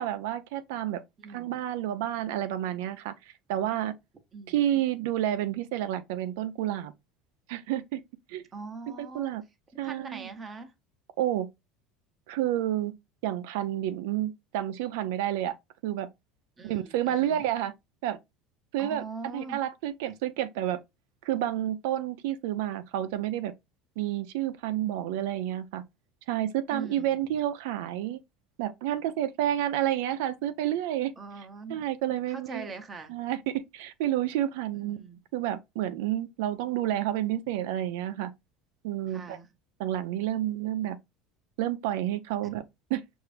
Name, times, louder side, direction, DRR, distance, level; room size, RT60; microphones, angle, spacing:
voice 1, 0.0-1.0 1.3-3.9 4.5-6.9 7.5-8.0 8.3-8.4 9.0-9.4 9.8-10.3 11.2-11.5 12.3-12.9 13.2-15.6 15.8-16.1 16.6-17.7 18.0-18.2 18.7-19.0 19.3-20.8 21.2-23.5 24.0-25.8 26.3-28.2 28.6-32.7 33.1-38.3 38.8-39.4 39.8-41.0 41.6-42.6 42.9-43.0, right 12 dB, 80° right, 0.5 m, -30 dB
voice 2, 1.2-1.6 4.3-4.6 8.5-9.3 9.7-10.7 16.6-17.4 18.8-19.6 26.7-27.2 31.2-31.8 32.3-33.1 34.7-35.2 39.1-39.5 42.4-42.5, right 4 dB, 15° right, 0.7 m, -42 dB
5.8 x 2.6 x 3.3 m
cardioid pair, 165°, 0 cm